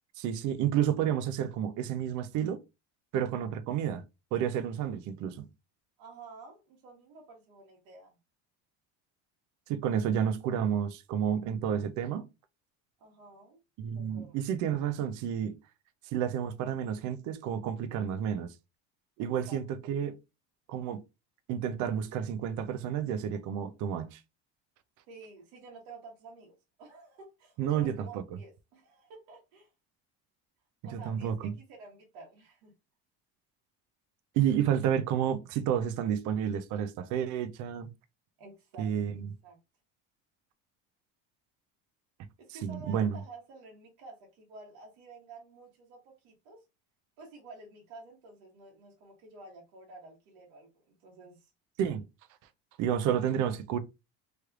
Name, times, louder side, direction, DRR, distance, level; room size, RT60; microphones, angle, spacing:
voice 1, 0.2-2.6 3.1-4.0 4.3-5.5 9.7-12.3 13.8-15.6 16.0-18.5 19.2-20.2 20.7-21.0 21.5-24.2 27.6-28.2 30.9-31.5 34.3-37.9 38.8-39.3 42.5-43.2 51.8-52.0 52.8-53.8, right 9 dB, 55° right, 0.5 m, -30 dB
voice 2, 6.0-8.2 13.0-13.6 13.9-14.4 19.2-19.6 25.1-29.7 30.8-32.7 38.4-39.2 39.4-39.6 42.4-46.6 47.2-51.5, right 3 dB, 75° right, 1.4 m, -51 dB
3.2 x 3.1 x 2.3 m
cardioid pair, 130°, 36 cm